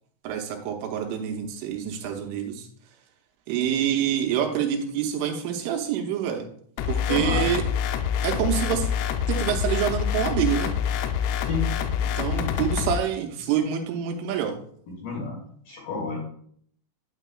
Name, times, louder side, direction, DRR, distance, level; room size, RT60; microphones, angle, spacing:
voice 1, 0.2-2.7 3.5-6.5 6.9-7.6 8.2-8.9 9.3-10.7 12.2-14.6, right 9 dB, 85° right, 4 dB, 3.2 m, -26 dB
sound 1, 6.8-13.0, left 8 dB, 85° left, 3.1 m, -26 dB
voice 2, 7.1-7.5 11.4-11.7 14.9-15.4 15.7-16.2, left 4 dB, 55° left, -2 dB, 3.2 m, -30 dB
9.0 x 9.0 x 2.2 m, 0.62 s
omnidirectional pair, 5.7 m